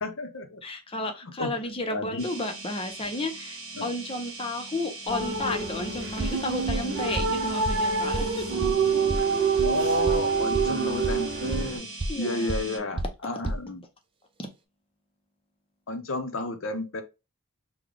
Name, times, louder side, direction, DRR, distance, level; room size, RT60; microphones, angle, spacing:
voice 1, 0.0-0.6 1.2-1.6 1.9-2.3 3.0-3.1 3.7-3.9 9.6-11.9 12.2-13.8 15.9-17.0, left 2 dB, 60° left, 0.7 m, -32 dB
voice 2, 0.6-8.5 12.1-12.9 14.4-14.5, left 2 dB, 25° left, 0.6 m, -33 dB
sound 1, 2.2-12.8, right 2 dB, 70° right, 1.3 m, -41 dB
sound 2, 5.1-11.8, right 5 dB, 50° right, 0.9 m, -27 dB
sound 3, 6.2-6.3 6.7-6.8 7.2-7.3 7.6-7.7 8.1-8.2 8.6-8.7 9.1-9.2 9.6-9.7 10.1-10.2 10.5-10.6 11.0-11.1 11.5-11.6 12.0-12.1 12.5-12.6 13.0-13.1 13.4-13.5, right 1 dB, 25° right, 0.3 m, -28 dB
3.8 x 2.2 x 3.3 m
head